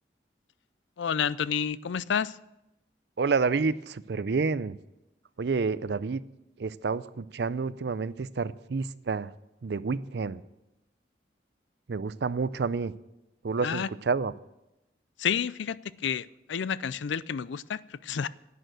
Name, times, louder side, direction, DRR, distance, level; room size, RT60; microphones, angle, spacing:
voice 1, 1.0-2.4 13.6-13.9 15.2-18.3, left 7 dB, 80° left, 19 dB, 0.4 m, -30 dB
voice 2, 3.2-4.8 5.4-6.2 6.6-9.3 9.6-10.4 11.9-12.9 13.4-14.3, right 4 dB, 60° right, 17 dB, 0.5 m, -29 dB
11.0 x 9.0 x 7.9 m, 0.92 s
head